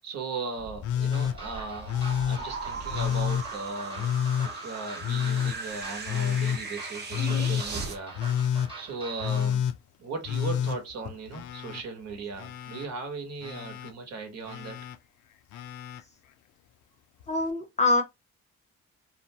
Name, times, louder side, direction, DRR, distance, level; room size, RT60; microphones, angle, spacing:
voice 1, 0.0-2.0 2.3-4.1 4.4-9.6 10.0-14.8, right 4 dB, 60° right, 1.1 m, -38 dB
sound 1, 0.5-8.0, right 4 dB, 35° right, 0.7 m, -39 dB
Telephone, 0.8-1.4 1.9-2.4 2.9-3.5 4.0-4.5 5.0-5.6 6.1-6.6 7.1-7.7 8.1-8.7 9.2-9.8 10.2-11.8 12.1-12.9 13.4-13.9 14.5-15.0 15.5-16.0 17.2-17.3, left 9 dB, 80° left, 0.5 m, -29 dB
sound 2, 1.1-9.6, right 2 dB, 15° right, 1.1 m, -45 dB
voice 2, 7.2-7.5 17.3-18.0, left 3 dB, 25° left, 0.7 m, -25 dB
2.7 x 2.1 x 2.8 m
cardioid pair, 90°, 30 cm